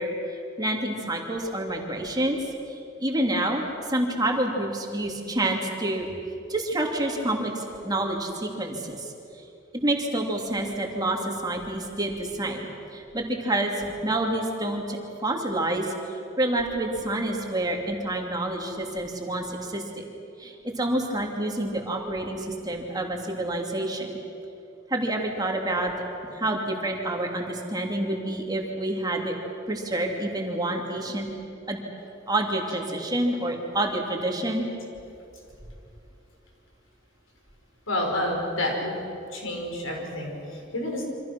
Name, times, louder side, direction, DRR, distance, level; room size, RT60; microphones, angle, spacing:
voice 1, 0.0-2.4 2.7-6.1 6.5-9.1 9.7-20.0 20.4-24.2 24.9-25.9 26.3-29.4 29.7-31.3 31.7-31.8 32.3-34.7, right 1 dB, 20° right, 1 dB, 2.8 m, -28 dB
voice 2, 37.9-39.0 39.3-41.0, left 1 dB, 85° left, 1 dB, 5.6 m, -29 dB
28.5 x 25.5 x 6.1 m, 2.7 s
head